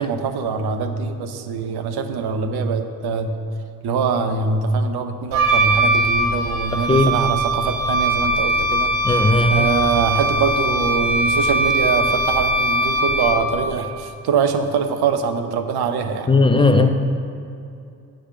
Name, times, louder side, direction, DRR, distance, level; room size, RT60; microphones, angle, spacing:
voice 1, 0.0-3.4 3.8-8.9 9.5-16.3, right 5 dB, 50° right, 6 dB, 1.0 m, -23 dB
Wind instrument woodwind instrument, 5.3-13.6, right 1 dB, 75° right, 1.5 m, -20 dB
voice 2, 9.0-9.7 16.3-16.9, left 2 dB, 10° left, 7 dB, 0.8 m, -16 dB
9.2 x 4.9 x 7.2 m, 2.5 s
figure-of-eight pair, 45°, 48 cm